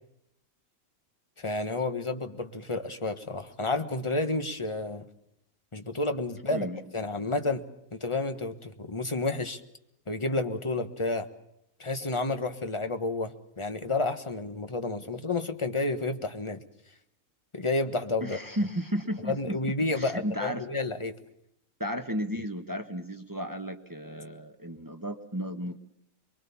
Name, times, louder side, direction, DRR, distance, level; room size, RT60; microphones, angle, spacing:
voice 1, 1.4-5.0 5.7-6.7 6.9-7.6 7.9-9.6 10.1-11.3 11.8-16.6 17.5-18.4 19.3-21.1, left 2 dB, 20° left, 8 dB, 1.4 m, -30 dB
voice 2, 6.5-6.8 18.2-19.6 19.9-20.7 21.8-25.8, equal, 15° right, 6 dB, 1.2 m, -34 dB
24.0 x 23.0 x 7.1 m, 0.80 s
omnidirectional pair, 1.5 m